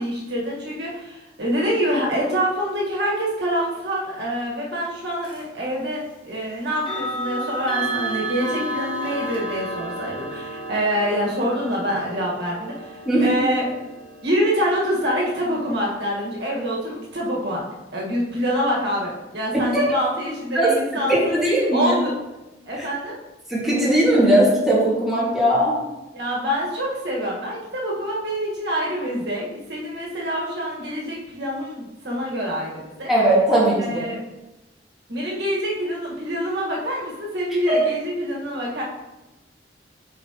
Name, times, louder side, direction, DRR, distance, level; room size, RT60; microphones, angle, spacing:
voice 1, 0.0-13.8 14.2-17.6 17.9-21.4 21.7-22.2 22.6-23.2 26.1-33.1 33.8-34.2 35.1-38.8, equal, 70° right, -3 dB, 1.6 m, -26 dB
sound 1, 5.2-5.5 6.8-17.6, right 2 dB, 25° left, 1.4 m, -33 dB
voice 2, 21.1-21.9 22.8-22.9 23.5-25.8 33.1-34.1 37.7-37.8, right 1 dB, ahead, -8 dB, 1.9 m, -18 dB
8.3 x 4.3 x 2.9 m, 1.0 s
head